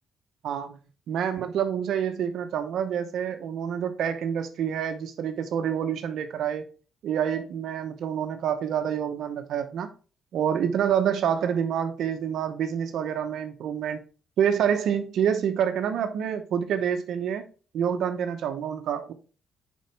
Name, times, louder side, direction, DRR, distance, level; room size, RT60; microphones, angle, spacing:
voice 1, 0.4-0.8 1.1-6.7 7.0-9.9 10.3-14.0 14.4-17.4 17.7-19.1, right 8 dB, 75° right, 0.8 m, -27 dB
6.4 x 5.3 x 3.3 m
cardioid pair, 90°, 0 cm